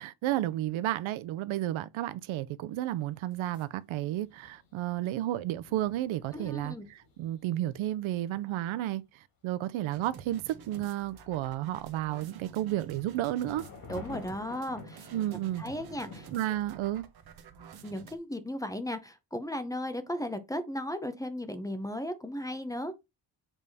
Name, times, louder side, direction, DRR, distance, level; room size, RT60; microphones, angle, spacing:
voice 1, 0.0-13.6 15.1-15.6 16.3-17.1, right 14 dB, 85° right, 0.7 m, -32 dB
sound 1, 2.7-3.8 4.0-8.7 12.3-16.8, left 4 dB, 45° left, 2.6 m, -50 dB
voice 2, 6.3-6.9 13.9-15.1 15.6-16.3 17.8-22.9, left 1 dB, 10° left, 0.7 m, -36 dB
sound 2, 9.9-18.2, right 6 dB, 50° right, 1.2 m, -50 dB
7.2 x 3.5 x 4.1 m
cardioid pair, 140°, 46 cm